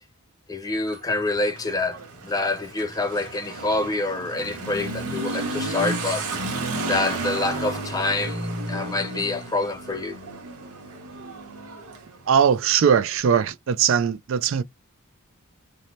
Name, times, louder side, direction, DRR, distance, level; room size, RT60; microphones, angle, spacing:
voice 1, 0.5-2.0 2.2-6.3 6.8-10.2, left 2 dB, 15° left, 0.4 m, -26 dB
Motorcycle / Accelerating revving vroom, 0.7-13.1, right 2 dB, 85° right, 0.9 m, -32 dB
voice 2, 12.3-14.6, right 7 dB, 60° right, 0.3 m, -20 dB
2.7 x 2.1 x 3.0 m
head